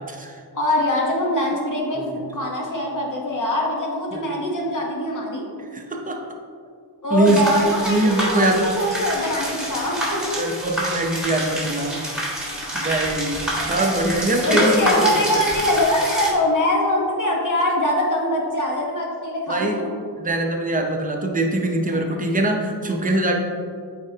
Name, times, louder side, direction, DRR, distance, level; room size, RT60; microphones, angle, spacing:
voice 1, 0.0-0.4 2.0-2.2 4.1-4.2 5.6-6.2 7.1-7.4 7.9-8.6 10.4-12.0 12.7-15.2 19.5-19.8 20.2-23.3, right 1 dB, 20° right, 2 dB, 0.7 m, -23 dB
voice 2, 0.5-5.4 7.0-10.4 12.4-12.8 13.5-14.0 14.4-19.9 21.9-22.0, left 1 dB, 45° left, -2 dB, 1.1 m, -23 dB
sound 1, 7.3-16.3, equal, ahead, 1.4 m, -27 dB
8.4 x 4.3 x 2.8 m, 2.1 s
wide cardioid pair, 120°, 44 cm